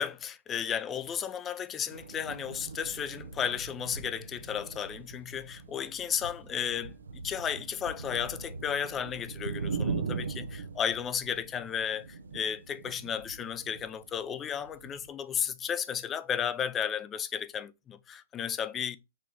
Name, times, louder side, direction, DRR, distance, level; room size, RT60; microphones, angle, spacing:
voice 1, 0.0-6.9 7.2-12.1 12.3-19.0, left 8 dB, 20° left, 0.4 m, -33 dB
sound 1, 1.9-15.1, right 4 dB, 85° right, 0.5 m, -40 dB
4.3 x 3.1 x 3.4 m
hypercardioid pair, 120°, 0 cm